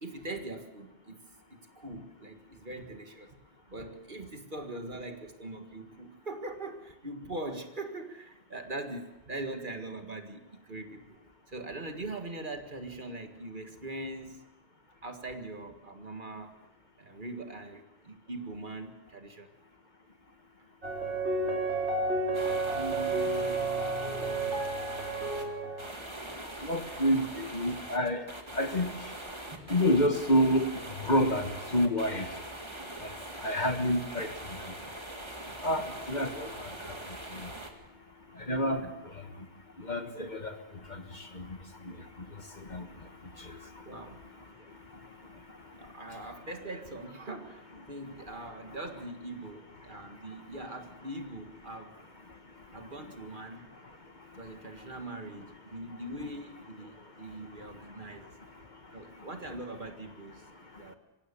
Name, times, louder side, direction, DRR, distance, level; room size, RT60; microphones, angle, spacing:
voice 1, 0.0-3.4 3.7-11.2 11.5-14.4 15.0-16.5 17.0-19.5 38.8-38.9 43.8-44.2 45.8-51.9 52.7-53.7 54.4-58.3 58.9-61.0, right 2 dB, 45° right, 5 dB, 2.0 m, -42 dB
sound 1, 20.8-25.9, right 3 dB, 75° right, 4.0 m, -31 dB
sound 2, 22.3-25.4 25.8-37.7, right 1 dB, 25° right, 2.2 m, -42 dB
voice 2, 22.8-23.8 26.6-28.2 28.5-28.9 29.7-30.7 31.0-32.3 33.4-34.3 35.6-36.7 38.5-38.8 39.8-40.6 40.9-41.0 41.3-41.4 42.7-42.8, equal, 40° left, 7 dB, 1.6 m, -28 dB
24.0 x 16.5 x 6.9 m, 0.98 s
omnidirectional pair, 1.2 m